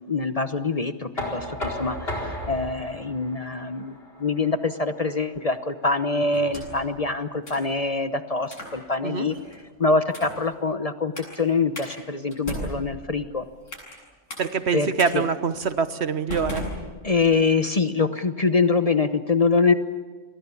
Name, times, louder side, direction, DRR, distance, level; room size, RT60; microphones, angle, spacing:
voice 1, 0.1-9.4 9.8-13.4 14.7-15.3 17.0-19.7, left 4 dB, 30° left, 9 dB, 1.0 m, -24 dB
Knock, 1.2-7.0, left 1 dB, 50° left, 4.7 m, -36 dB
sound 1, 6.3-6.9 7.5-7.7 8.4-8.8 9.3-9.6 10.1-10.5 11.2-11.4 11.8-11.9 12.3-14.0 14.3-14.5 15.0-15.1 15.6-15.8 16.3-17.4, equal, 80° left, 8.5 m, -36 dB
voice 2, 14.4-16.6, right 5 dB, 60° right, 12 dB, 1.3 m, -25 dB
29.0 x 23.5 x 7.1 m, 1.4 s
omnidirectional pair, 1.3 m